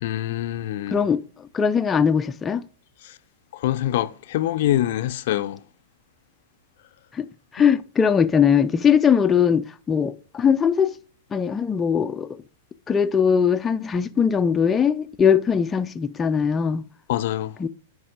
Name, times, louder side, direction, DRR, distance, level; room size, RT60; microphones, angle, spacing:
voice 1, 0.0-1.0 3.0-3.2 3.5-5.6 17.1-17.5, left 13 dB, 60° left, 0.6 m, -25 dB
voice 2, 1.5-2.6 7.1-7.3 7.5-10.9 11.3-12.4 12.9-16.8 17.6-17.7, left 7 dB, 20° left, 0.5 m, -20 dB
10.0 x 4.8 x 4.9 m
hypercardioid pair, 105°, 0 cm